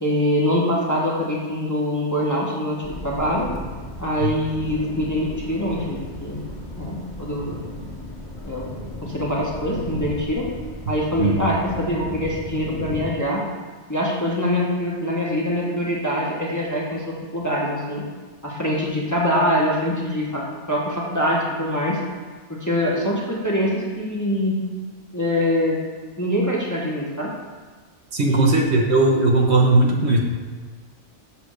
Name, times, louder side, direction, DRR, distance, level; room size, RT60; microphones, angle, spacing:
voice 1, 0.0-3.5 4.0-6.4 6.8-7.6 8.4-8.7 9.0-10.5 10.9-13.4 13.9-18.0 18.4-22.0 22.5-24.6 25.1-25.8 26.2-27.3 28.2-28.8, equal, 15° left, -5 dB, 1.0 m, -24 dB
sound 1, 2.8-13.1, left 1 dB, 40° left, 1.4 m, -35 dB
voice 2, 28.1-30.2, right 2 dB, 65° right, 0 dB, 1.1 m, -18 dB
7.0 x 3.4 x 6.2 m, 1.4 s
omnidirectional pair, 1.2 m